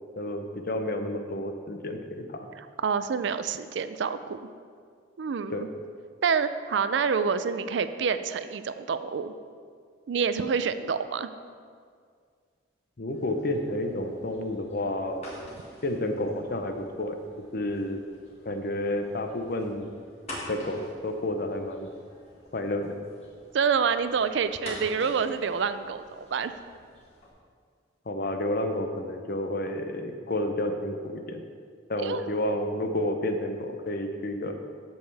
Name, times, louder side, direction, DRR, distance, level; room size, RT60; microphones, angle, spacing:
voice 1, 0.2-2.5 5.5-5.6 13.0-15.2 15.8-17.2 17.5-18.0 18.4-19.9 20.5-21.9 22.5-23.0 28.1-31.4 31.9-34.5, left 1 dB, 50° left, 6 dB, 0.7 m, -30 dB
voice 2, 2.6-4.5 5.2-5.7 6.2-9.3 10.1-11.3 23.5-26.5 32.0-32.3, right 6 dB, 70° right, 11 dB, 0.4 m, -27 dB
sound 1, 13.1-27.3, left 1 dB, 35° left, 1.8 m, -47 dB
14.0 x 5.4 x 3.4 m, 2.1 s
head